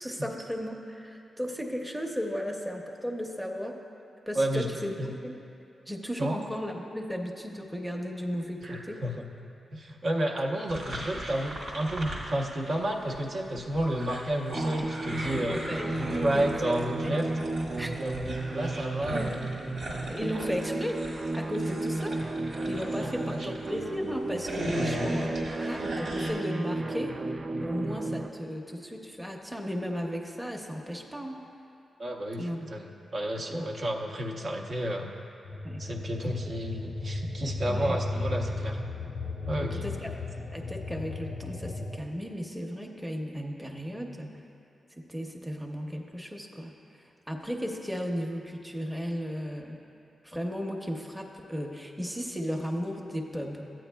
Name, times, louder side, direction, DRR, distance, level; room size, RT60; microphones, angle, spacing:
voice 1, 0.0-3.8 4.3-5.3 5.9-9.0 15.5-16.7 17.0-17.2 17.8-17.9 19.1-19.3 20.1-21.0 21.3-22.2 22.7-27.1 27.6-31.5 32.4-32.6 33.5-33.7 35.6-35.8 36.2-36.3 37.7-38.0 39.6-40.2 40.5-44.4 45.0-46.7 47.3-49.8 50.2-53.7, equal, 5° right, 1 dB, 0.7 m, -35 dB
voice 2, 4.3-4.7 5.0-5.1 6.2-6.4 8.6-9.3 9.7-15.6 15.9-17.3 17.8-19.8 23.0-23.5 24.7-25.0 32.0-35.1 35.8-38.8 39.5-39.9, right 1 dB, 60° right, 0 dB, 0.7 m, -31 dB
sound 1, 10.7-12.9 13.1-23.8 24.2-26.3, equal, 90° right, 1.6 m, -39 dB
sound 2, 14.5-28.3, right 2 dB, 35° right, 0.4 m, -33 dB
sound 3, 35.4-42.0, left 2 dB, 50° left, 0.4 m, -35 dB
13.5 x 8.7 x 2.2 m, 2.6 s
cardioid pair, 85°, 0 cm